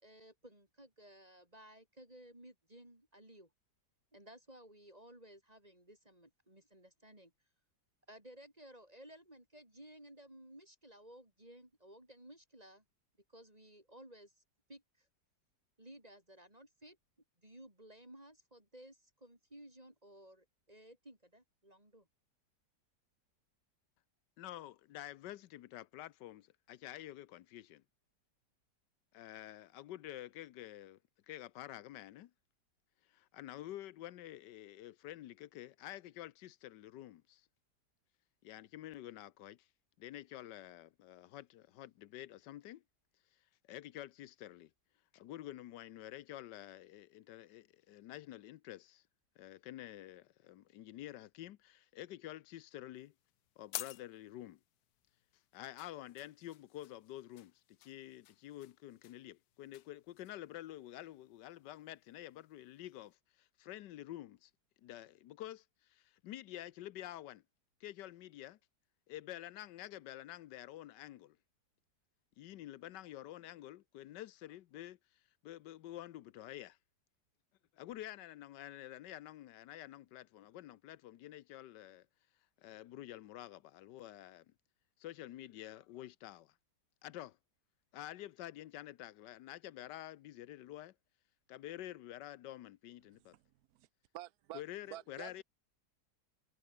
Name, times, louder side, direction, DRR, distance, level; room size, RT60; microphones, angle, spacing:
voice 1, 0.0-3.5 4.1-7.3 8.1-12.8 13.3-14.4 14.7-15.1 15.8-17.0 17.4-22.1, right 1 dB, 20° right, 5.0 m, -57 dB
voice 2, 24.4-27.8 29.1-31.0 31.3-32.3 33.1-37.5 38.4-39.7 40.0-42.8 43.7-44.7 45.1-49.0 49.4-53.1 53.6-54.6 55.5-64.5 64.8-67.4 67.8-68.6 69.1-71.4 72.4-75.0 75.4-76.8 77.7-82.1 82.6-84.5 85.0-86.5 87.0-87.4 87.9-90.9 91.5-93.4 94.5-95.4, left 14 dB, 85° left, 1.4 m, -49 dB
sound 1, 52.9-63.1, left 14 dB, 70° left, 1.1 m, -53 dB
voice 3, 94.1-94.6 94.9-95.4, right 15 dB, 70° right, 1.2 m, -48 dB
omnidirectional pair, 1.8 m